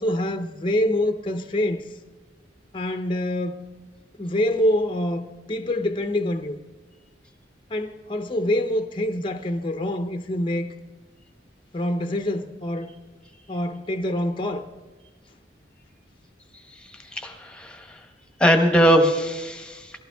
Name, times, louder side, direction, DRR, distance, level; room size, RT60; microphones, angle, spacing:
voice 1, 0.0-1.8 2.7-3.6 4.2-6.6 7.7-10.7 11.7-12.9 13.5-14.6, left 1 dB, 30° left, 0.7 m, -25 dB
voice 2, 17.1-18.0 18.4-19.9, equal, 5° left, 1.2 m, -20 dB
18.5 x 14.5 x 3.5 m
head